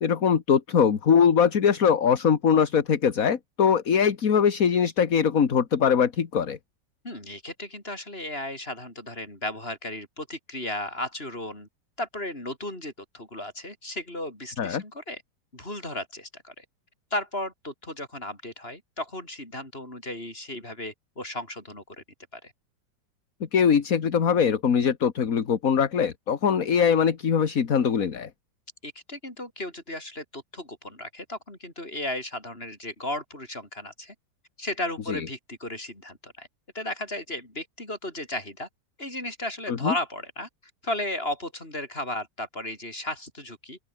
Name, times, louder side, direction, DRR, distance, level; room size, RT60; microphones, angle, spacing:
voice 1, 0.0-6.6 14.6-14.8 23.5-28.3 35.1-35.3 39.7-39.9, left 7 dB, 50° left, 1.9 m, -22 dB
voice 2, 7.0-11.7 12.0-15.2 15.5-16.6 17.1-21.8 22.3-22.5 28.8-34.1 34.6-36.5 36.7-38.7 39.0-40.5 40.8-43.8, left 1 dB, 30° left, 8.0 m, -35 dB
open air
omnidirectional pair, 1.9 m